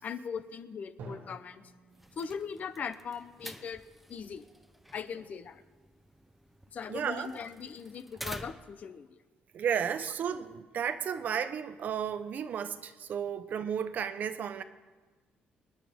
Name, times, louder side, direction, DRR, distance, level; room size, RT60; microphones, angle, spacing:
voice 1, 0.0-1.7 2.2-3.8 4.1-4.4 4.9-5.6 6.7-9.2, left 6 dB, 45° left, 0.8 m, -40 dB
Drum, 1.0-4.7, right 2 dB, 80° right, 2.6 m, -52 dB
sound 1, 1.9-8.9, equal, 5° right, 0.6 m, -49 dB
voice 2, 6.9-7.3 9.5-14.6, right 8 dB, 55° right, 0.8 m, -33 dB
26.5 x 10.0 x 3.6 m
cardioid pair, 125°, 3 cm